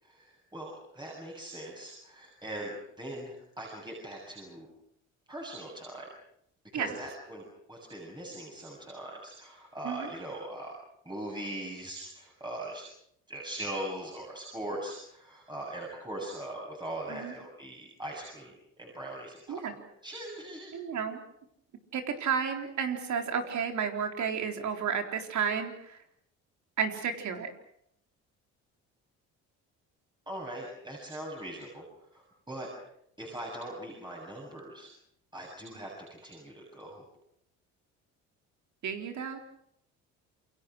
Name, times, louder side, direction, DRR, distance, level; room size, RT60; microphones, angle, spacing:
voice 1, 0.0-4.7 5.3-6.1 6.7-10.7 11.1-12.8 13.3-19.6 20.0-20.7 30.3-31.9 32.1-32.7 33.2-34.9 35.3-37.0, right 1 dB, 15° right, -2 dB, 7.7 m, -41 dB
voice 2, 20.7-21.2 21.9-26.0 26.8-27.5 38.8-39.4, right 7 dB, 60° right, 5 dB, 4.0 m, -32 dB
28.0 x 23.0 x 6.4 m, 0.73 s
supercardioid pair, 85°, 33 cm